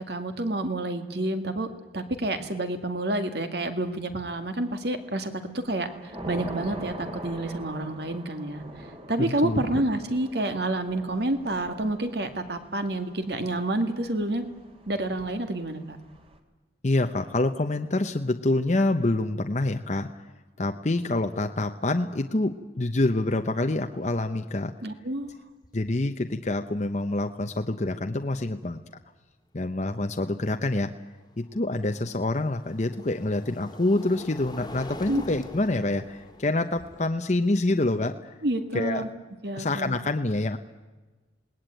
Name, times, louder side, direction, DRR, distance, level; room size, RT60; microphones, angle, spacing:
voice 1, 0.0-1.7 1.9-8.6 9.1-14.5 14.9-16.0 24.8-25.4 35.1-35.2 38.4-39.1 39.4-40.0, right 1 dB, 60° right, 7 dB, 2.2 m, -29 dB
Thunder / Rain, 4.5-4.8 5.3-16.4, right 1 dB, 30° right, 2.5 m, -43 dB
voice 2, 9.2-9.6 16.8-20.2 20.6-24.7 25.7-28.8 29.5-30.9 31.4-38.3 38.7-39.0 39.5-40.6, left 2 dB, 40° left, 6 dB, 0.8 m, -26 dB
sound 1, 25.2-25.3 25.6-26.1 27.9-28.0 31.0-39.1, left 1 dB, 20° left, 1.8 m, -45 dB
27.5 x 19.5 x 9.1 m, 1.2 s
head